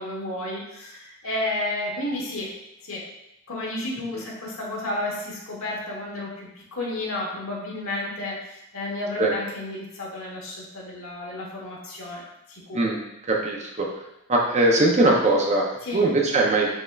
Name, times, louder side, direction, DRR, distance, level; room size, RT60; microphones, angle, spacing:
voice 1, 0.0-2.5 2.8-3.0 3.5-12.2 12.5-12.8 15.8-16.1, left 1 dB, 65° left, -3 dB, 1.2 m, -32 dB
voice 2, 13.3-13.9 14.3-15.7 15.9-16.7, right 2 dB, 30° right, 0 dB, 0.5 m, -20 dB
5.1 x 3.6 x 2.3 m, 0.86 s
head